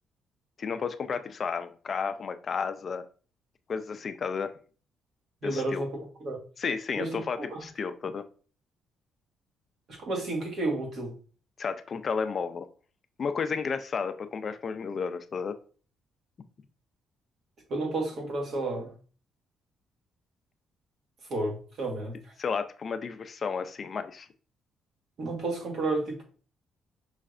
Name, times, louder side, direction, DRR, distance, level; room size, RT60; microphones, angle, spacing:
voice 1, 0.6-3.0 3.7-4.5 5.4-5.8 6.6-8.2 11.6-12.7 13.2-15.6 22.4-24.3, left 5 dB, 40° left, 9 dB, 0.4 m, -32 dB
voice 2, 5.4-5.9 6.2-6.4 6.9-7.1 7.4-7.6 9.9-11.1 17.7-18.9 21.3-22.2 25.2-26.2, right 2 dB, 60° right, 1 dB, 1.5 m, -31 dB
5.6 x 3.2 x 2.5 m, 0.39 s
cardioid pair, 125°, 0 cm